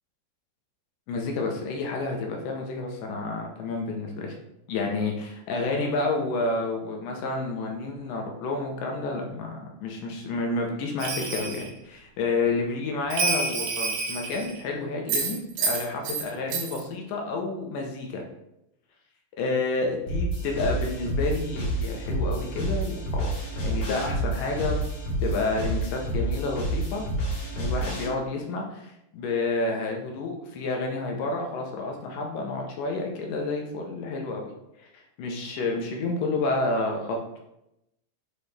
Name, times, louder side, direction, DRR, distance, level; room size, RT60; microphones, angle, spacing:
voice 1, 1.1-4.3 4.7-18.2 19.4-23.3 23.6-24.8 25.2-27.0 27.6-34.4 34.9-37.4, left 3 dB, 75° left, 1 dB, 2.0 m, -30 dB
Bell, 11.0-11.7 13.1-14.6 15.1-16.3 16.5-16.8, right 4 dB, 80° right, 3.4 m, -28 dB
sound 1, 20.1-28.1, right 1 dB, 50° left, 1.6 m, -29 dB
7.7 x 4.1 x 3.3 m, 0.84 s
omnidirectional pair, 4.9 m